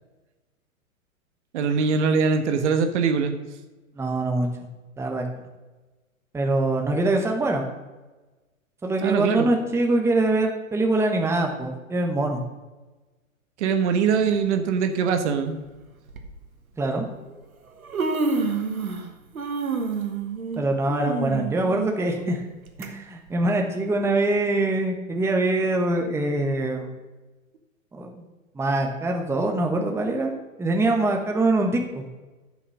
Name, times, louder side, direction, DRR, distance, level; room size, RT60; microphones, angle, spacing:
voice 1, 1.5-3.3 9.0-9.5 13.6-15.6, right 5 dB, 55° right, 7 dB, 1.3 m, -22 dB
voice 2, 4.0-4.5 5.0-5.3 6.3-7.7 8.8-12.4 16.8-17.1 20.6-22.4 22.8-26.9 27.9-28.2 28.5-30.3 30.6-32.1, right 2 dB, 5° right, 2 dB, 1.1 m, -24 dB
Human voice, 14.1-14.3 15.4-15.5 16.1-16.3 17.3-17.4 17.7-19.1 19.3-22.9 23.3-23.4 24.2-24.3, right 4 dB, 85° right, 1.5 m, -28 dB
11.0 x 5.6 x 6.4 m, 1.2 s
hypercardioid pair, 115°, 41 cm